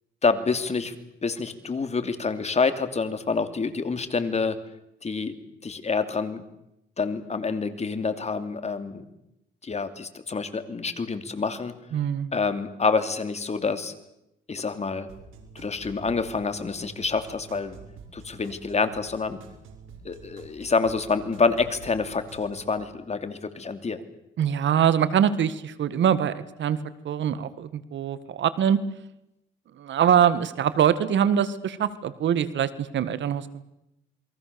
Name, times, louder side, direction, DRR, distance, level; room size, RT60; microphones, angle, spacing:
voice 1, 0.2-0.9 1.2-4.6 5.0-5.3 5.6-6.4 7.0-9.0 9.6-11.7 12.3-13.9 14.5-15.1 15.5-17.8 18.1-19.4 20.0-24.0, left 4 dB, 35° left, 9 dB, 2.8 m, -27 dB
voice 2, 11.9-12.3 24.4-26.8 27.0-28.8 29.8-33.6, right 9 dB, 70° right, 14 dB, 1.8 m, -23 dB
sound 1, 15.1-22.8, right 5 dB, 85° right, 5.4 m, -47 dB
28.5 x 22.5 x 7.0 m, 0.86 s
cardioid pair, 90°, 20 cm